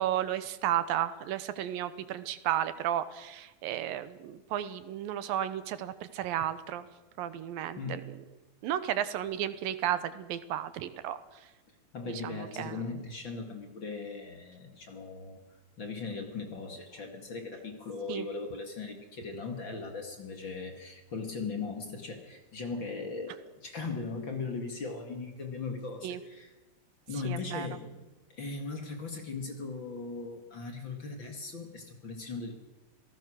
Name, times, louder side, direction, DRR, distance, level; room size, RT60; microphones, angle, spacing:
voice 1, 0.0-6.8 7.2-8.0 8.6-11.2 12.1-12.8 18.1-18.3 26.0-26.2 27.2-27.7, right 11 dB, 85° right, 13 dB, 2.7 m, -33 dB
voice 2, 7.7-8.2 11.9-15.4 15.8-26.5 27.1-32.5, left 4 dB, 40° left, 4 dB, 2.4 m, -38 dB
27.0 x 18.5 x 6.4 m, 1.1 s
omnidirectional pair, 4.1 m